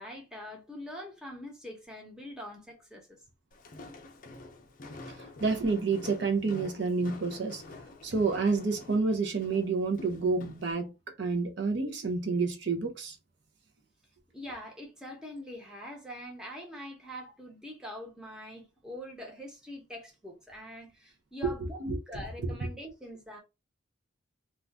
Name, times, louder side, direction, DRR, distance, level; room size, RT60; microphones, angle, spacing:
voice 1, 0.0-3.2 14.3-23.4, left 1 dB, 5° right, 0.8 m, -44 dB
Walk footsteps, 3.5-10.7, left 2 dB, 40° left, 0.5 m, -47 dB
voice 2, 5.4-7.6 8.0-10.9 11.2-13.2 21.4-21.5 21.8-22.2, right 4 dB, 55° right, 0.6 m, -29 dB
2.5 x 2.3 x 3.3 m
head